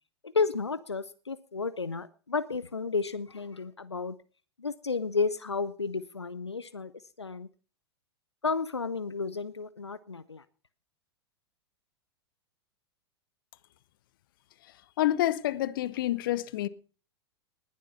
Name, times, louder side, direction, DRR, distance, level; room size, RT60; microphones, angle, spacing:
voice 1, 0.2-4.2 4.6-6.9 7.2-7.5 8.4-10.4, left 4 dB, 85° left, 0.6 m, -32 dB
voice 2, 15.0-16.7, left 14 dB, 55° left, 0.9 m, -28 dB
19.5 x 7.6 x 5.4 m
figure-of-eight pair, 95°, 14 cm